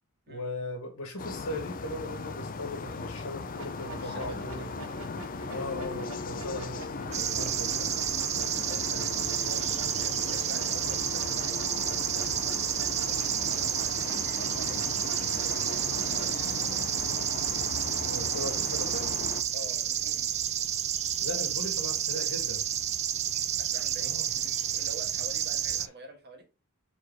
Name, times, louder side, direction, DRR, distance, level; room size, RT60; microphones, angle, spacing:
voice 1, 0.3-4.7 5.5-7.9 8.9-9.1 18.1-19.1 21.2-22.6 24.0-24.3 25.8-25.9, left 1 dB, 80° left, 1.8 m, -38 dB
sound 1, 1.2-19.4, left 4 dB, 40° left, 0.5 m, -38 dB
sound 2, 3.5-16.3, right 2 dB, 85° right, 2.2 m, -44 dB
voice 2, 3.9-4.9 5.5-5.7 8.5-11.7 12.0-14.2 14.6-14.9 15.3-17.1 19.5-20.3 23.6-26.5, right 1 dB, 50° right, 1.6 m, -48 dB
sound 3, 7.1-25.9, right 10 dB, 30° right, 0.4 m, -30 dB
4.9 x 4.3 x 4.6 m
head